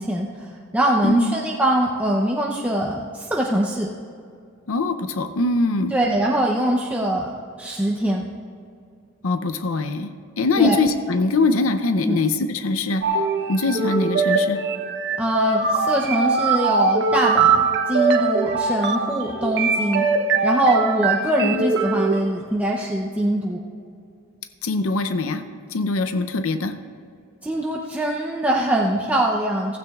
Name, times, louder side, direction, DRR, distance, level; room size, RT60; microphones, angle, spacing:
voice 1, 0.0-3.9 5.9-8.3 10.6-10.8 12.0-12.2 15.2-20.1 20.4-23.6 27.4-29.8, right 1 dB, 5° right, -2 dB, 0.6 m, -23 dB
voice 2, 1.0-1.3 4.7-6.0 9.2-13.0 13.5-14.6 21.4-21.7 24.6-25.4 25.7-26.8, left 3 dB, 85° left, 9 dB, 0.6 m, -22 dB
sound 1, 13.0-22.2, right 4 dB, 55° right, 0.9 m, -22 dB
15.5 x 15.0 x 2.4 m, 2.3 s
head